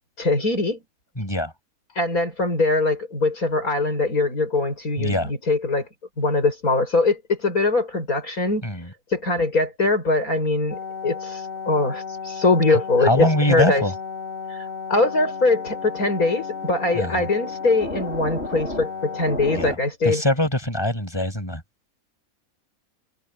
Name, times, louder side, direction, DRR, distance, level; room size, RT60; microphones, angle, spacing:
voice 1, 0.2-0.8 2.0-5.9 6.2-8.7 9.1-13.8 14.5-14.6 14.9-20.2, left 3 dB, 75° left, 7.2 m, -22 dB
voice 2, 1.2-1.5 5.0-5.3 8.6-8.9 12.7-13.9 16.9-17.3 19.5-19.7 20.0-21.6, left 1 dB, 15° left, 7.9 m, -23 dB
sound 1, 10.7-19.8, left 4 dB, 45° left, 6.1 m, -33 dB
omnidirectional pair, 1.5 m